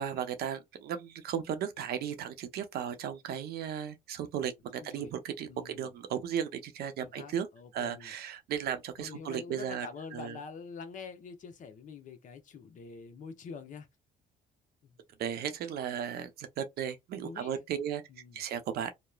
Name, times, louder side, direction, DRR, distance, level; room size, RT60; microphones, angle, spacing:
voice 1, 0.0-7.5 7.7-9.9 10.1-10.4 15.2-18.0 18.3-18.9, right 8 dB, 70° right, 0.7 m, -35 dB
voice 2, 4.8-5.1 5.5-5.9 7.0-8.1 9.0-13.9 14.8-15.0 17.2-17.6 18.1-18.4, left 5 dB, 50° left, 0.8 m, -46 dB
3.0 x 2.1 x 2.3 m
cardioid pair, 110°, 17 cm